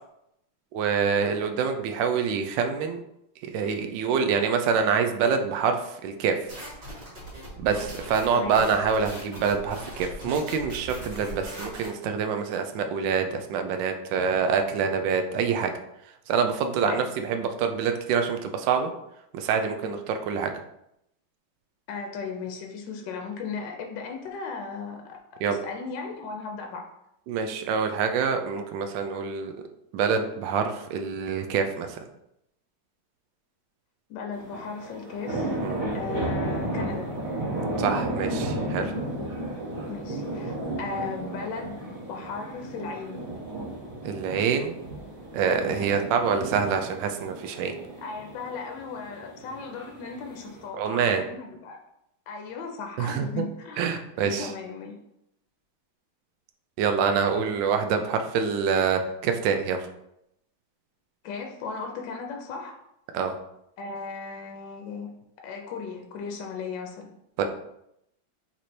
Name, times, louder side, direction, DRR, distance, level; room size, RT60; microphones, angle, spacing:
voice 1, 0.7-3.0 3.5-6.4 7.6-15.7 16.3-18.9 19.3-20.5 25.4-25.6 27.3-29.5 29.9-32.0 35.6-35.8 37.8-38.9 44.0-44.8 45.3-47.7 50.7-51.2 53.0-53.4 53.8-54.5 56.8-59.8 63.1-63.4 67.4-67.5, right 6 dB, 75° right, 6 dB, 1.2 m, -26 dB
sound 1, 6.5-11.9, equal, 50° right, 2.1 m, -40 dB
voice 2, 8.3-8.7 16.8-17.0 21.9-25.2 25.5-26.8 34.1-35.5 35.9-37.1 39.9-43.2 45.7-46.0 48.0-51.8 52.3-54.9 61.2-62.8 63.8-65.1 65.4-67.1, left 5 dB, 70° left, 2 dB, 1.2 m, -36 dB
sound 2, 34.3-50.7, right 1 dB, 30° right, 1.1 m, -33 dB
4.0 x 3.1 x 4.2 m, 0.81 s
omnidirectional pair, 2.2 m